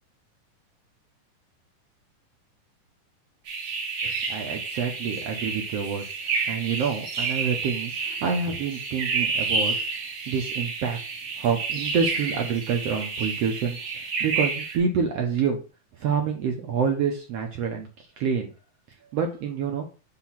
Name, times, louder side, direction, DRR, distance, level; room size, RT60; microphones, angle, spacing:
sound 1, 3.5-14.8, right 4 dB, 55° right, 2.3 m, -30 dB
voice 1, 4.3-6.1 6.5-9.7 10.3-11.0 11.4-13.8 14.2-15.6 16.0-18.5 19.1-19.8, right 6 dB, 80° right, 2 dB, 1.4 m, -27 dB
5.8 x 3.6 x 5.9 m, 0.33 s
omnidirectional pair, 3.9 m